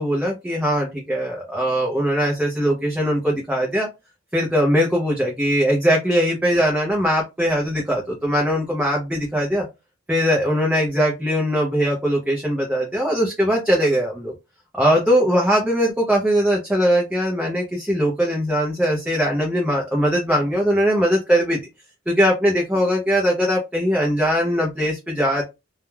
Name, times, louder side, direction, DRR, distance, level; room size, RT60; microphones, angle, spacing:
voice 1, 0.0-3.9 4.3-9.7 10.1-14.3 14.7-21.6 22.1-25.4, equal, 5° right, -2 dB, 0.5 m, -20 dB
2.3 x 2.1 x 3.1 m, 0.24 s
head